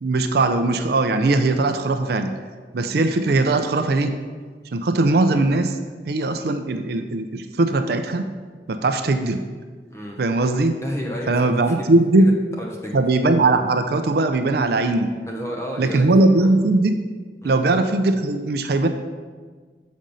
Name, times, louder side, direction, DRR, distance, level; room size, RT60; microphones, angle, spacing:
voice 1, 0.0-2.3 2.7-4.1 4.7-5.8 6.1-8.3 8.7-9.4 10.2-10.7 11.3-12.3 12.9-15.1 15.8-17.0 17.4-18.9, right 2 dB, 60° right, 7 dB, 0.5 m, -19 dB
voice 2, 10.8-13.0 15.3-16.1 16.4-16.5 17.4-17.6, equal, 15° left, -1 dB, 0.8 m, -32 dB
7.5 x 5.2 x 5.4 m, 1.5 s
head